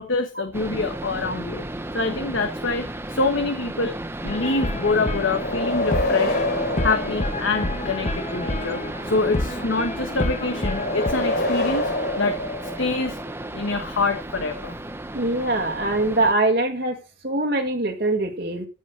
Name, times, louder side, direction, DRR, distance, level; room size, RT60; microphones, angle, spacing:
voice 1, 0.0-1.6 1.9-3.9 4.2-6.4 6.8-11.9 12.2-12.4 12.8-13.2 13.5-14.8, left 3 dB, 70° left, 6 dB, 1.3 m, -25 dB
sound 1, 0.5-16.3, right 1 dB, 10° right, 0.7 m, -34 dB
sound 2, 4.3-11.1, left 1 dB, 35° left, 1.0 m, -29 dB
sound 3, 5.3-8.0 10.6-13.4, left 1 dB, 50° left, 3.3 m, -27 dB
voice 2, 15.1-17.0 17.2-18.7, right 2 dB, 55° right, 0 dB, 1.8 m, -23 dB
14.5 x 5.6 x 6.4 m, 0.34 s
head